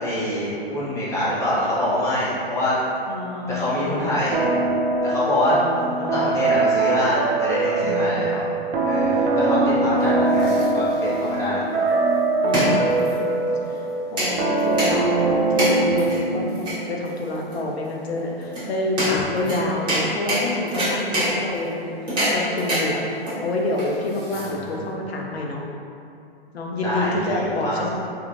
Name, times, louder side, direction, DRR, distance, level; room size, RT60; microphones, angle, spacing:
voice 1, 0.0-2.7 3.5-4.4 5.0-5.5 6.0-8.4 8.8-11.6 24.3-24.8 26.8-27.9, left 1 dB, 10° left, -10 dB, 0.6 m, -25 dB
voice 2, 3.1-3.9 5.5-6.3 7.8-8.5 12.4-13.3 13.7-21.9 22.3-23.1 23.4-25.6 26.5-27.9, left 2 dB, 90° left, -1 dB, 0.6 m, -28 dB
sound 1, 4.3-16.7, right 3 dB, 80° right, 0.5 m, -22 dB
sound 2, 10.0-24.9, equal, 15° right, 1.0 m, -28 dB
2.8 x 2.4 x 2.6 m, 2.6 s
hypercardioid pair, 125°, 30 cm